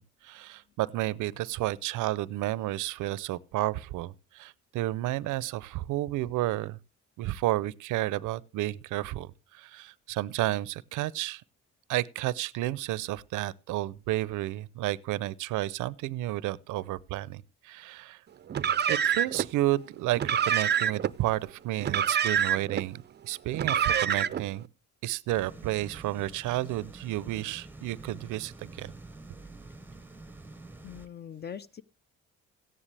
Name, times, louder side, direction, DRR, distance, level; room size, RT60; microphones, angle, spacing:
voice 1, 0.0-6.8 7.2-11.4 11.9-18.2 18.9-24.7 25.0-28.9, right 16 dB, 90° right, 0.5 m, -31 dB
Car, 18.5-19.5 20.1-21.1 21.8-22.8 23.5-24.5, right 8 dB, 35° right, 0.4 m, -26 dB
sound 1, 25.3-31.1, right 2 dB, 5° right, 0.8 m, -47 dB
voice 2, 30.8-31.8, left 8 dB, 35° left, 0.7 m, -41 dB
14.0 x 10.0 x 3.3 m
cardioid pair, 90°, 30 cm